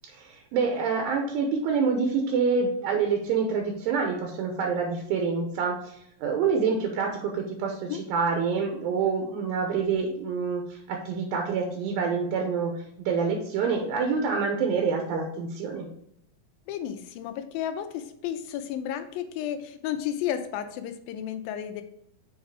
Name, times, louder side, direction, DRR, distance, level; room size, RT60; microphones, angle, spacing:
voice 1, 0.1-5.8 6.2-15.9, right 5 dB, 80° right, 3 dB, 2.6 m, -27 dB
voice 2, 16.7-21.8, left 10 dB, 85° left, 8 dB, 2.3 m, -32 dB
7.2 x 3.6 x 4.7 m, 0.74 s
omnidirectional pair, 4.2 m